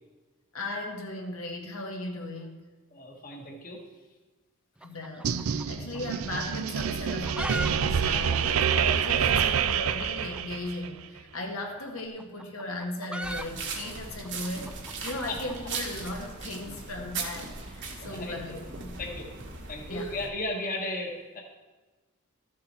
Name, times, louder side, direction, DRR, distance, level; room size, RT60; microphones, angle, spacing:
voice 1, 0.5-2.6 4.8-14.7 15.0-18.9 19.9-20.1, left 2 dB, 75° left, 1 dB, 1.5 m, -37 dB
voice 2, 2.9-3.8 15.3-15.7 18.0-18.5 19.0-19.3 19.7-21.4, left 2 dB, 40° left, 0 dB, 1.4 m, -35 dB
sound 1, 4.8-6.1 6.4-6.5 7.0-7.7 8.0-8.1 8.3-8.4 9.0-9.1 10.3-10.5 11.6-15.8, right 1 dB, 5° right, 0.3 m, -38 dB
sound 2, 5.2-10.9, right 7 dB, 75° right, 0.5 m, -27 dB
sound 3, 13.2-20.3, right 4 dB, 55° right, 1.6 m, -39 dB
13.5 x 7.4 x 4.3 m, 1.2 s
head